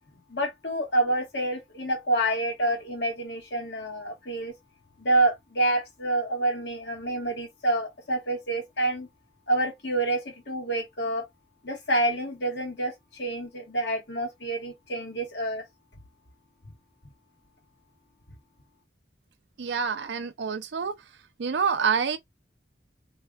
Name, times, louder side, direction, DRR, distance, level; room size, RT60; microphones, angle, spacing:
voice 1, 0.3-4.5 5.0-9.1 9.5-11.3 11.6-15.6, right 2 dB, 75° left, 1.6 m, -28 dB
voice 2, 19.6-20.9 21.4-22.2, right 6 dB, 80° right, 0.5 m, -27 dB
3.5 x 3.3 x 2.3 m
head